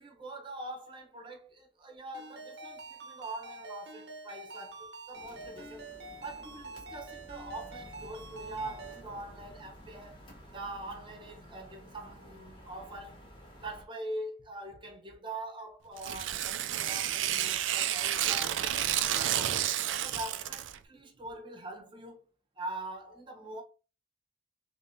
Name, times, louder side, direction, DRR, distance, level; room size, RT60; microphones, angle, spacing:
voice 1, 0.0-5.9 6.2-10.2 10.5-13.2 13.6-18.6 19.0-19.7 20.0-22.3 22.6-23.6, right 2 dB, 25° right, 0.9 m, -43 dB
Ringtone, 2.1-9.0, right 2 dB, 60° right, 0.8 m, -46 dB
sound 1, 5.1-13.8, equal, 25° left, 1.2 m, -52 dB
Tearing, 16.0-20.8, right 11 dB, 85° right, 0.4 m, -30 dB
3.5 x 3.2 x 2.7 m
head